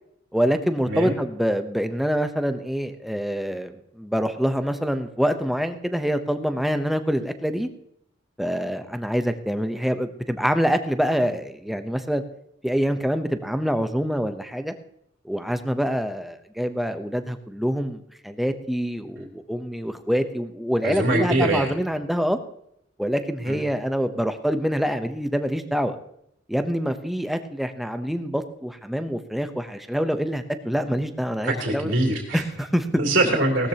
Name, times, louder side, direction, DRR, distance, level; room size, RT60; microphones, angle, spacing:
voice 1, 0.3-7.7 8.4-12.2 12.6-14.7 15.2-22.4 23.0-26.0 26.5-32.0 32.3-33.0, equal, ahead, 8 dB, 0.8 m, -25 dB
voice 2, 20.8-21.7 23.5-23.6 31.4-32.4 33.0-33.7, right 1 dB, 80° right, -1 dB, 2.9 m, -23 dB
18.0 x 13.0 x 2.9 m, 0.73 s
head